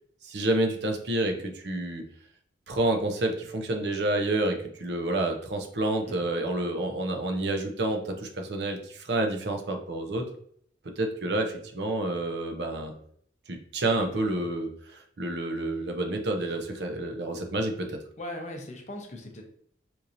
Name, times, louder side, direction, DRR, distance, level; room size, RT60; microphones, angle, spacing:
voice 1, 0.2-2.1 2.7-10.3 11.0-12.9 13.5-18.0, right 2 dB, 65° right, 4 dB, 0.6 m, -29 dB
voice 2, 18.2-19.4, left 1 dB, 40° left, 3 dB, 0.6 m, -40 dB
4.4 x 2.7 x 2.6 m, 0.65 s
head